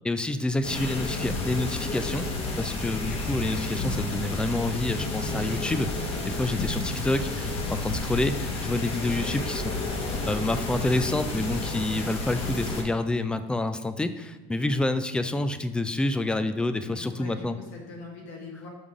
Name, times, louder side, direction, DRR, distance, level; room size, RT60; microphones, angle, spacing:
voice 1, 0.0-2.3 2.6-9.7 10.3-17.6, left 2 dB, 5° left, 11 dB, 0.3 m, -28 dB
sound 1, 0.6-12.8, left 2 dB, 45° left, 1.2 m, -31 dB
voice 2, 16.9-18.7, left 3 dB, 70° left, -1 dB, 1.3 m, -42 dB
5.4 x 3.7 x 4.8 m, 1.2 s
supercardioid pair, 110°, 14 cm